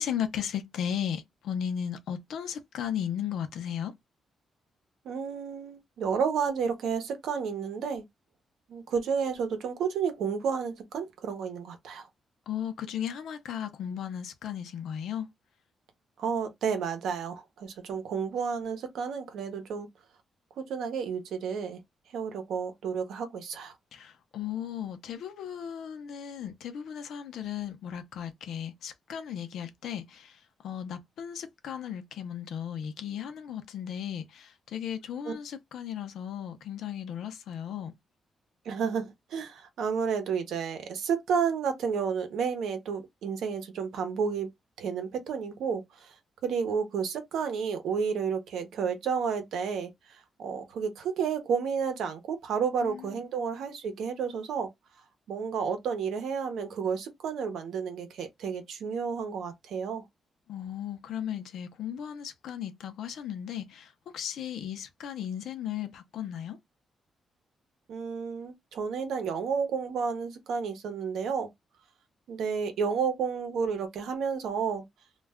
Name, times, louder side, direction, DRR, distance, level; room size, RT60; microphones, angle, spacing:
voice 1, 0.0-3.9 12.5-15.3 23.9-37.9 52.8-53.1 60.5-66.6, left 9 dB, 80° left, 0.5 m, -36 dB
voice 2, 5.0-8.0 8.7-12.0 16.2-19.9 20.6-21.8 22.1-23.7 35.3-35.4 38.7-44.5 44.8-45.8 46.4-49.9 50.4-54.7 55.3-60.0 67.9-71.5 72.3-74.8, right 6 dB, 80° right, 0.7 m, -31 dB
2.3 x 2.1 x 3.4 m
wide cardioid pair, 180°, 0 cm